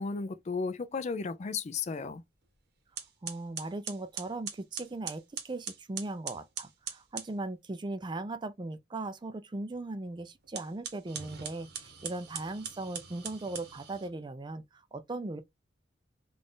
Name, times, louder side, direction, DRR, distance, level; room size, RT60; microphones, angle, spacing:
voice 1, 0.0-2.2, left 4 dB, 35° left, 0.4 m, -34 dB
sound 1, 2.4-2.6 3.0-7.3 10.4-14.1, right 7 dB, 60° right, 1.0 m, -42 dB
voice 2, 3.2-15.4, right 2 dB, 25° right, 0.4 m, -38 dB
3.9 x 2.4 x 3.7 m
head